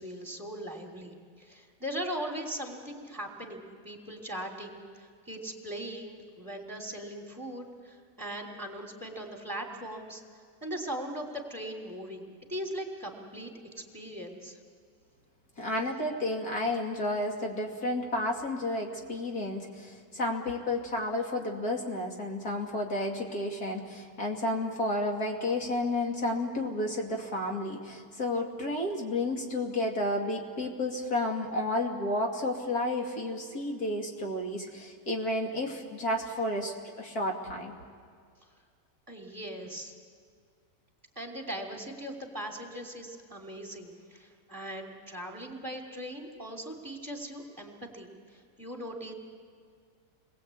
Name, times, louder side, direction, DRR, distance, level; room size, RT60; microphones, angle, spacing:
voice 1, 0.0-10.2 10.6-13.5 13.8-14.6 39.1-39.9 41.1-49.1, equal, 10° right, 0 dB, 2.9 m, -39 dB
voice 2, 15.6-37.7, left 1 dB, 60° left, 0 dB, 3.0 m, -31 dB
29.0 x 21.5 x 8.4 m, 2.2 s
omnidirectional pair, 1.8 m